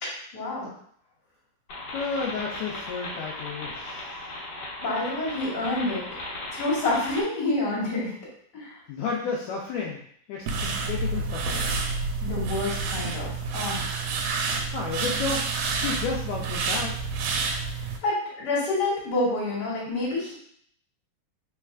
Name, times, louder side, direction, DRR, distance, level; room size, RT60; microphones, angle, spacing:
voice 1, 0.0-0.7 4.8-6.0 6.5-8.1 8.5-8.8 12.2-13.9 18.0-20.3, left 2 dB, 40° left, -8 dB, 1.9 m, -28 dB
sound 1, 1.7-7.2, left 2 dB, 60° left, 1.8 m, -37 dB
voice 2, 1.9-4.1 8.9-10.0 10.3-11.7 14.5-15.4 15.8-17.1, left 4 dB, 85° left, -4 dB, 1.6 m, -32 dB
sound 2, 10.5-18.0, right 4 dB, 90° right, 2.4 m, -29 dB
4.3 x 4.0 x 2.4 m, 0.65 s
omnidirectional pair, 3.9 m